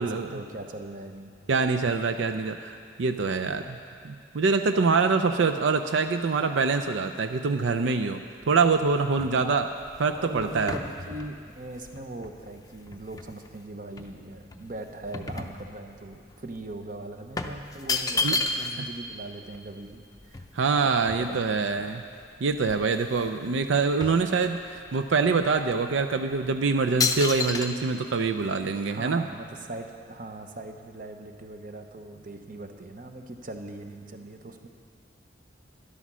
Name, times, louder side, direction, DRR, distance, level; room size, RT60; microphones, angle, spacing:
voice 1, 0.0-1.3 3.6-3.7 10.2-20.4 20.8-21.9 28.8-34.7, right 1 dB, 45° right, 5 dB, 0.9 m, -40 dB
voice 2, 1.5-3.8 4.0-8.2 8.5-9.7 10.0-10.7 18.2-18.4 18.8-18.9 20.5-22.0 22.4-29.3, right 4 dB, 85° right, 7 dB, 0.5 m, -25 dB
sound 1, 8.4-13.5 14.0-16.1 16.4-16.6 17.4-18.9 19.2-19.3 19.5-21.7 22.2-22.3 22.6-23.4 23.6-24.9 25.4-25.6 26.2-26.5 27.0-27.7, left 4 dB, 20° left, 0.5 m, -32 dB
12.5 x 11.0 x 6.1 m, 2.2 s
head